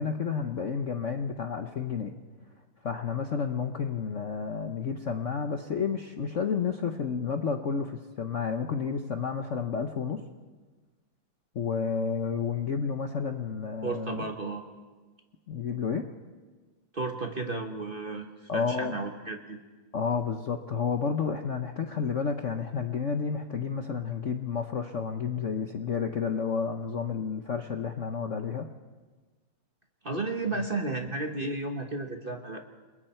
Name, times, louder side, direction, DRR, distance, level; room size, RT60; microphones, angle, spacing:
voice 1, 0.0-2.1 2.8-10.2 11.5-14.2 15.5-16.1 18.5-19.0 19.9-28.7, left 6 dB, 50° left, 6 dB, 0.9 m, -31 dB
voice 2, 13.8-14.6 16.9-19.6 30.0-32.6, right 3 dB, 30° right, 4 dB, 1.2 m, -33 dB
29.0 x 22.0 x 4.5 m, 1.3 s
omnidirectional pair, 2.3 m